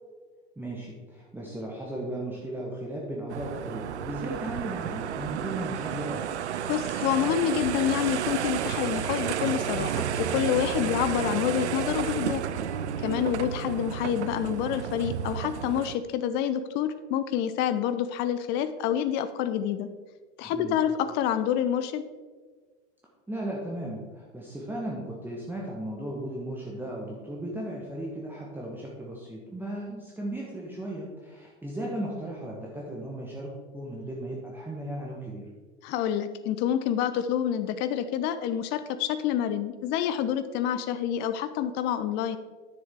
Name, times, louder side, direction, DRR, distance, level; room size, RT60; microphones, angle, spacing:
voice 1, 0.6-6.2 20.4-20.8 23.3-35.4, right 1 dB, 5° right, -4 dB, 1.4 m, -36 dB
sound 1, 3.3-16.0, right 9 dB, 75° right, 0.5 m, -31 dB
voice 2, 6.7-12.4 13.0-19.9 20.4-22.1 35.8-42.4, left 10 dB, 30° left, 11 dB, 0.5 m, -28 dB
10.0 x 7.0 x 3.7 m, 1.4 s
figure-of-eight pair, 85°, 35 cm